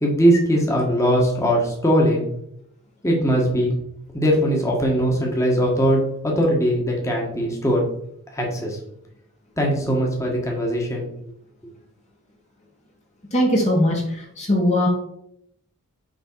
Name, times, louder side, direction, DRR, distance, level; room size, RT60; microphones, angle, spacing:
voice 1, 0.0-2.2 3.0-3.7 4.1-7.8 8.3-8.8 9.6-11.1, equal, 15° left, -1 dB, 1.5 m, -20 dB
voice 2, 13.3-14.0 14.4-14.9, left 1 dB, 30° left, -1 dB, 1.4 m, -19 dB
6.1 x 5.5 x 4.6 m, 0.75 s
head